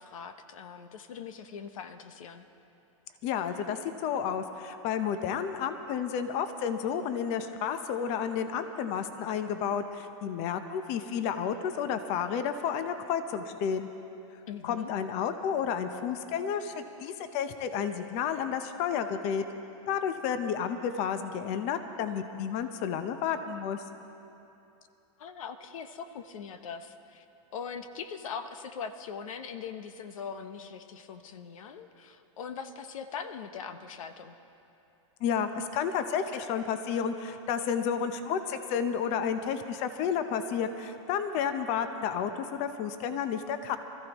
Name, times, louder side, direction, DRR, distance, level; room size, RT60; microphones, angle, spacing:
voice 1, 0.0-2.5 14.5-14.9 25.2-27.2 27.5-34.4, left 6 dB, 80° left, 9 dB, 0.9 m, -41 dB
voice 2, 3.2-13.9 14.6-19.4 19.9-23.8 35.2-43.8, left 7 dB, 40° left, 9 dB, 0.8 m, -31 dB
24.5 x 14.5 x 3.0 m, 2.8 s
supercardioid pair, 140°, 17 cm